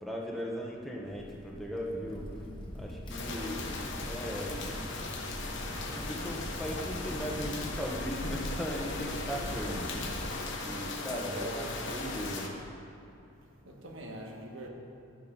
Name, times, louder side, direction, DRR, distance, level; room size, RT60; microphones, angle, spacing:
voice 1, 0.0-2.3 2.7-3.7 4.0-4.8 5.9-12.5, equal, ahead, 1.1 m, -38 dB
Crackle, 1.1-10.3, equal, 20° left, 1.4 m, -42 dB
sound 1, 3.1-12.5, left 3 dB, 55° left, 1.2 m, -38 dB
voice 2, 11.0-11.7 13.2-14.7, right 1 dB, 60° right, 1.5 m, -43 dB
11.5 x 10.0 x 3.9 m
head